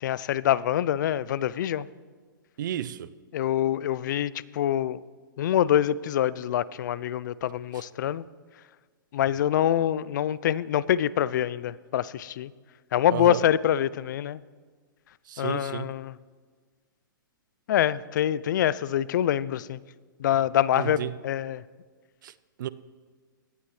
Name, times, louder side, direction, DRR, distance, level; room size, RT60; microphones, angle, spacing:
voice 1, 0.0-1.9 3.3-5.0 5.4-8.2 9.1-12.5 12.9-14.4 15.4-16.1 17.7-19.8 20.2-21.6, left 11 dB, 60° left, 0.4 m, -25 dB
voice 2, 2.6-3.1 13.1-13.4 15.3-15.9 20.7-21.2 22.2-22.3 22.6-22.7, right 11 dB, 65° right, 0.5 m, -32 dB
17.5 x 11.0 x 3.2 m
hypercardioid pair, 145°, 11 cm